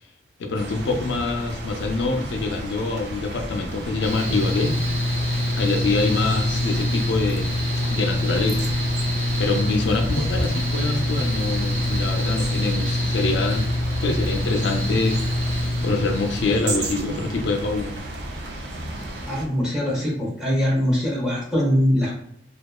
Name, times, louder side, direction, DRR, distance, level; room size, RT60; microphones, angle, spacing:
voice 1, 0.4-4.8 5.6-7.5 7.9-8.7 9.4-13.7 14.0-15.2 15.6-17.9, left 3 dB, 80° left, 5 dB, 0.4 m, -25 dB
sound 1, 0.5-19.5, right 1 dB, 70° right, 0.4 m, -34 dB
Mechanical fan, 4.0-16.6, left 1 dB, 35° right, 0.8 m, -25 dB
voice 2, 19.3-22.1, equal, 5° right, -6 dB, 0.8 m, -22 dB
2.8 x 2.2 x 2.2 m, 0.67 s
head